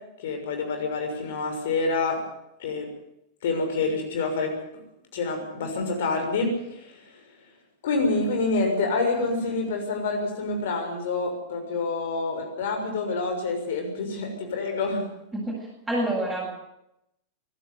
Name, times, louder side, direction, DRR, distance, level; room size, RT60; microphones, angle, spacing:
voice 1, 0.2-2.2 2.6-2.9 3.4-4.5 5.1-7.2 7.8-15.0, left 3 dB, 60° left, 4 dB, 6.4 m, -27 dB
voice 2, 15.3-16.5, right 1 dB, 10° right, -4 dB, 8.0 m, -28 dB
24.0 x 12.5 x 9.7 m, 0.82 s
figure-of-eight pair, 90°, 0 cm